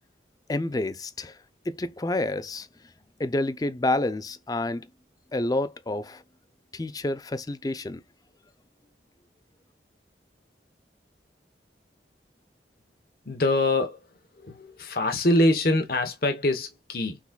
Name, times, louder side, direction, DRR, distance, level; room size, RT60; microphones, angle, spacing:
voice 1, 0.5-1.3 1.7-2.7 3.2-4.9 5.3-6.2 6.7-8.0, left 2 dB, 20° left, 0.4 m, -28 dB
voice 2, 13.3-14.0 14.4-17.2, left 1 dB, 55° left, 0.9 m, -24 dB
5.9 x 3.9 x 2.2 m
head